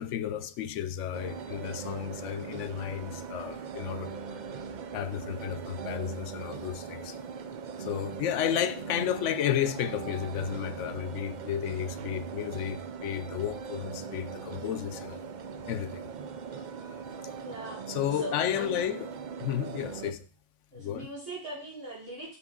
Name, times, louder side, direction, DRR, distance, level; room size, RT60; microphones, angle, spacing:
voice 1, 0.0-4.2 4.9-7.2 7.8-15.2 15.7-16.0 17.9-19.1 19.4-20.2 20.7-21.1, left 10 dB, 90° left, 0.9 m, -32 dB
sound 1, 1.1-20.1, right 6 dB, 60° right, 0.5 m, -40 dB
voice 2, 17.4-17.8 18.1-18.9 20.7-22.4, right 1 dB, 90° right, 4.0 m, -40 dB
6.0 x 6.0 x 3.8 m
omnidirectional pair, 1.2 m